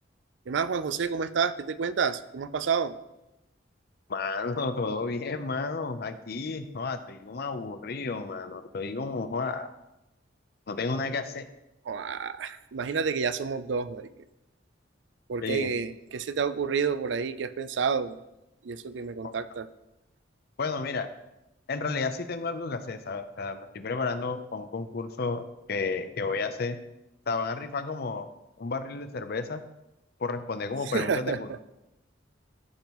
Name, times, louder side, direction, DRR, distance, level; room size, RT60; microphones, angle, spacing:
voice 1, 0.5-2.9 11.9-14.1 15.3-18.2 18.6-19.7 30.9-31.4, right 6 dB, 70° right, 14 dB, 0.4 m, -29 dB
voice 2, 4.1-9.7 10.7-11.4 15.4-15.7 19.2-19.3 20.6-21.1 21.7-26.8 27.3-28.3 28.6-29.6 30.2-31.6, left 4 dB, 55° left, 10 dB, 0.6 m, -32 dB
13.5 x 5.3 x 3.1 m, 0.92 s
head